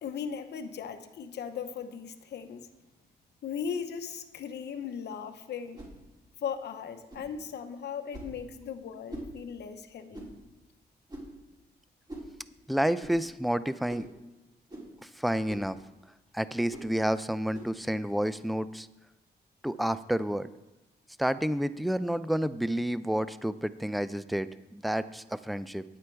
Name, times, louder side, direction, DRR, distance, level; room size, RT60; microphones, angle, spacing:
voice 1, 0.0-2.7 3.4-5.9 6.4-10.3, left 7 dB, 75° left, 7 dB, 0.9 m, -38 dB
sound 1, 5.7-6.0 7.1-7.3 8.1-8.4 9.1-9.3 10.1-10.4 11.1-11.4 12.1-12.3 13.0-13.2 13.9-14.1 14.7-14.9 15.5-15.7 16.7-16.9 17.5-17.7, right 1 dB, 25° right, 3.7 m, -43 dB
voice 2, 12.7-14.1 15.2-15.8 16.3-18.9 19.6-20.5 21.2-25.8, equal, ahead, 14 dB, 0.4 m, -30 dB
10.0 x 8.6 x 4.5 m, 1.0 s
cardioid pair, 100°, 17 cm